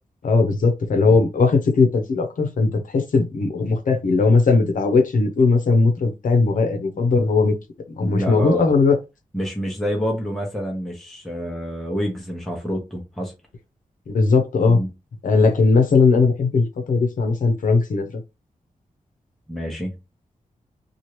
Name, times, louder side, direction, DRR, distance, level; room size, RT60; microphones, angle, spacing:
voice 1, 0.2-7.5 7.9-9.0 14.1-14.8 15.2-18.1, left 4 dB, 75° left, 0.7 m, -18 dB
voice 2, 8.0-8.7 9.3-13.3 14.7-14.9 19.5-19.9, equal, ahead, 0.8 m, -28 dB
2.9 x 2.4 x 3.1 m
wide cardioid pair, 145°, 14 cm